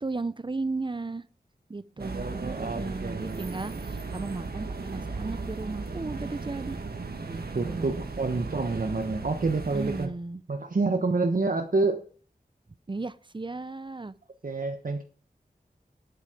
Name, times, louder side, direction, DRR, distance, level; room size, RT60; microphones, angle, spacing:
voice 1, 0.0-1.2 1.7-6.8 7.2-8.1 9.7-10.4 12.9-14.1, right 3 dB, 30° right, 16 dB, 0.6 m, -35 dB
voice 2, 2.0-3.5 7.5-10.1 10.5-12.0 14.4-15.0, right 3 dB, 60° right, 5 dB, 1.2 m, -28 dB
sound 1, 2.0-10.1, right 3 dB, 75° right, 1.6 m, -36 dB
10.5 x 8.3 x 5.1 m, 0.43 s
wide cardioid pair, 60°, 16 cm